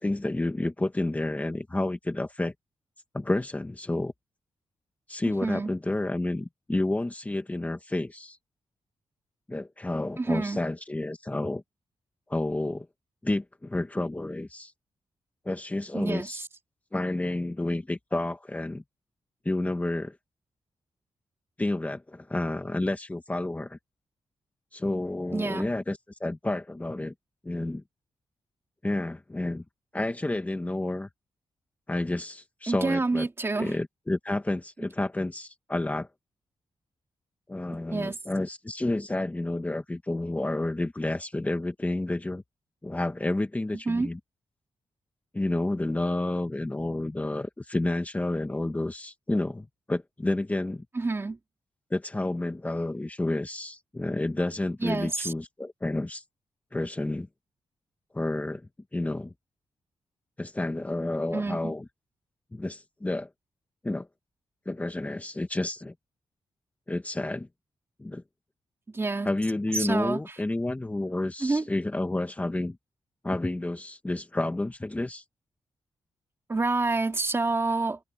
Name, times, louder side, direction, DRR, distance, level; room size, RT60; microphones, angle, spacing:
voice 1, 0.0-2.5 3.1-4.1 5.1-8.4 9.5-11.6 12.3-12.9 13.2-14.7 15.4-16.4 16.9-18.8 19.4-20.1 21.6-23.8 24.7-27.1 27.4-27.8 28.8-29.6 29.9-31.1 31.9-33.3 33.5-36.1 37.5-42.4 42.8-44.2 45.3-50.8 51.9-56.2 56.7-57.3 58.1-59.3 60.4-61.8 62.5-63.3 63.8-64.1 64.6-65.9 66.9-67.5 68.0-68.2 69.2-72.8 73.2-75.2, left 2 dB, 15° left, 1.7 m, -30 dB
voice 2, 5.2-5.7 10.2-10.6 15.9-16.5 25.3-25.7 32.7-33.7 37.9-38.2 43.9-44.1 50.9-51.4 54.8-55.3 61.3-61.7 68.9-69.3 69.7-70.2 71.4-71.6 76.5-78.0, right 3 dB, 25° right, 3.0 m, -28 dB
cardioid pair, 100°, 9 cm